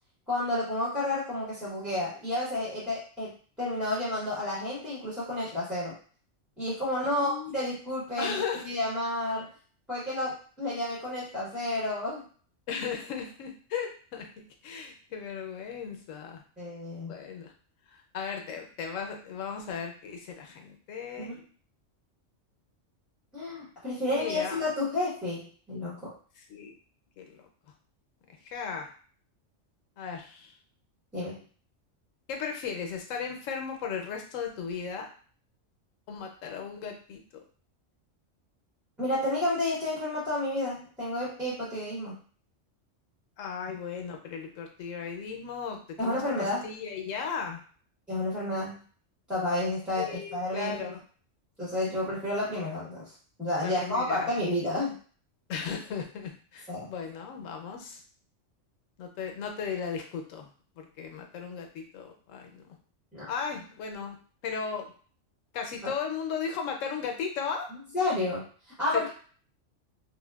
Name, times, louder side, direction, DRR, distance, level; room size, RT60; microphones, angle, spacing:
voice 1, 0.3-6.0 6.6-9.5 9.9-12.2 16.6-17.2 21.2-21.4 23.3-26.1 31.1-31.4 39.0-42.2 46.0-46.6 48.1-48.8 49.3-50.9 51.6-53.1 53.4-55.0 56.7-56.9 63.1-63.3 65.8-65.9 67.9-68.5 68.8-69.1, left 1 dB, ahead, -8 dB, 0.9 m, -31 dB
voice 2, 7.0-7.5 8.2-8.6 12.7-14.3 14.6-16.4 17.1-17.5 18.1-21.4 24.1-24.6 26.5-26.8 27.2-27.4 28.3-28.9 30.0-30.5 32.3-35.1 36.1-37.2 43.4-46.2 46.6-47.6 50.0-50.9 53.6-54.3 55.5-58.0 59.0-60.5 60.8-62.6 63.3-64.2 64.4-64.9 65.5-67.7 68.9-69.1, left 6 dB, 85° left, 2 dB, 1.0 m, -36 dB
3.1 x 2.1 x 2.3 m, 0.43 s
omnidirectional pair, 1.3 m